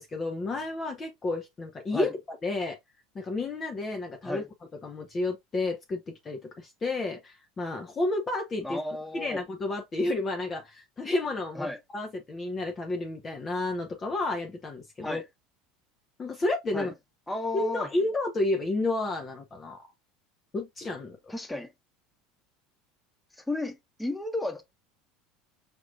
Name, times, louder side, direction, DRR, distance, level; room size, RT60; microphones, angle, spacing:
voice 1, 0.0-2.1 2.4-2.8 3.1-4.4 4.8-8.8 9.1-15.2 16.2-16.9 17.5-19.9 20.5-21.2, left 2 dB, 25° left, 0.8 m, -31 dB
voice 2, 8.6-9.4 11.5-11.8 15.0-15.2 16.7-16.9 17.3-17.9 21.3-21.7 23.4-24.6, left 2 dB, 10° left, 1.2 m, -33 dB
5.2 x 3.0 x 2.5 m
figure-of-eight pair, 70°, 0 cm